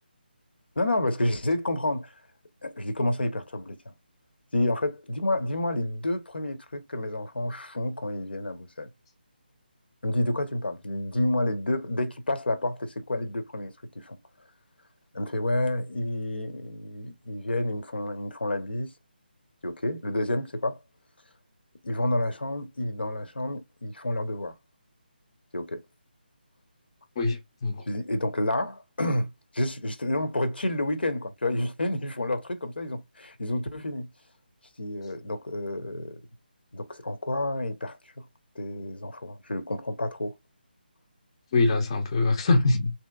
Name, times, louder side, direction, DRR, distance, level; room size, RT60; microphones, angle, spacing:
voice 1, 0.8-2.1 2.6-3.8 4.5-8.9 10.0-14.2 15.1-18.9 19.6-20.8 21.8-24.5 25.5-25.8 27.9-29.3 29.5-34.1 34.8-36.2 36.7-38.0 38.6-40.3, left 1 dB, 80° left, 0.8 m, -29 dB
voice 2, 27.2-27.8 41.5-42.9, left 3 dB, 30° left, 0.5 m, -23 dB
3.0 x 2.8 x 2.2 m
figure-of-eight pair, 155°, 6 cm